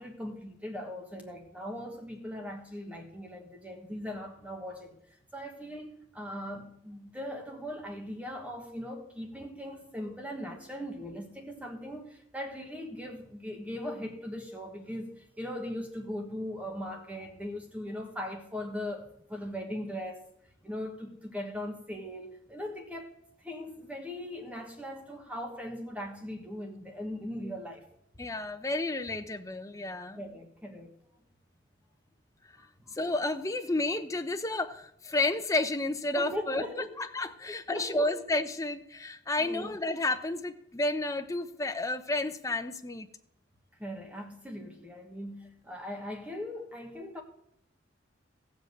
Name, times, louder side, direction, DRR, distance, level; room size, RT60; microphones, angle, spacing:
voice 1, 0.0-5.0 5.3-20.2 20.6-23.1 23.4-27.8 30.1-30.9 32.6-33.0 36.1-37.0 37.4-38.2 39.4-39.7 43.8-47.2, left 1 dB, 5° right, 1.2 m, -39 dB
voice 2, 28.2-30.2 32.9-36.6 37.0-43.1, left 2 dB, 15° left, 0.7 m, -31 dB
15.5 x 5.3 x 7.9 m
head